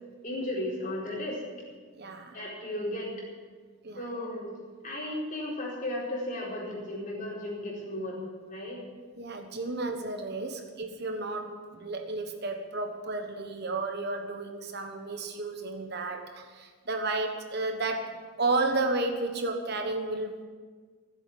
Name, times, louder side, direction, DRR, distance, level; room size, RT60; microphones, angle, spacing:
voice 1, 0.2-1.4 2.3-3.1 4.0-4.5 4.8-8.2 8.5-8.8, left 1 dB, 40° left, -4 dB, 4.4 m, -34 dB
voice 2, 1.9-2.4 3.8-4.1 9.2-20.4, right 2 dB, 50° right, 5 dB, 1.3 m, -32 dB
15.5 x 8.1 x 9.8 m, 1.5 s
head